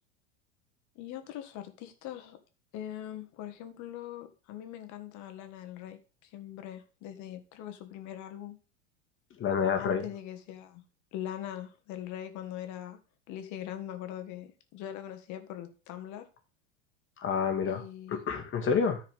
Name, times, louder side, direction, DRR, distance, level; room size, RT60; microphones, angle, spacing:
voice 1, 0.9-2.4 2.7-8.6 9.8-10.8 11.1-13.0 13.3-16.2 17.7-18.2, left 11 dB, 50° left, 1.6 m, -42 dB
voice 2, 9.4-10.0 17.2-17.8 18.1-19.0, left 6 dB, 30° left, 2.0 m, -28 dB
13.5 x 4.7 x 3.5 m
hypercardioid pair, 90°, 38 cm